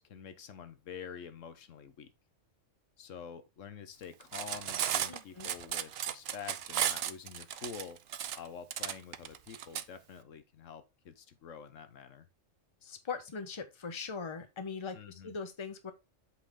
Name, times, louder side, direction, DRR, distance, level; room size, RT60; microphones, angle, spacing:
voice 1, 0.0-2.1 3.0-8.0 8.3-12.3 14.9-15.4, left 7 dB, 85° left, 1.2 m, -47 dB
Cutlery silverware, 4.2-9.8, right 10 dB, 60° right, 0.8 m, -34 dB
voice 2, 5.1-5.5 12.8-15.9, left 5 dB, 25° left, 0.9 m, -40 dB
8.2 x 4.3 x 3.6 m
omnidirectional pair, 1.3 m